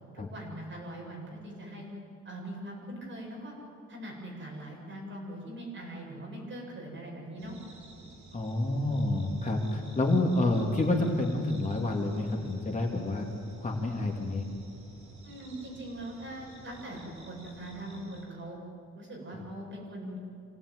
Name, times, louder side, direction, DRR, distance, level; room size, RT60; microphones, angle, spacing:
voice 1, 0.1-1.9 2.2-3.5 3.9-7.6 15.2-18.6 18.9-20.2, right 1 dB, 40° right, -2 dB, 7.8 m, -41 dB
sound 1, 7.4-18.2, right 2 dB, 75° right, 7.4 m, -52 dB
voice 2, 8.3-13.3 13.6-14.5 19.3-19.4, left 2 dB, 25° left, 0 dB, 2.3 m, -28 dB
26.0 x 18.0 x 9.6 m, 2.4 s
wide cardioid pair, 165°, 29 cm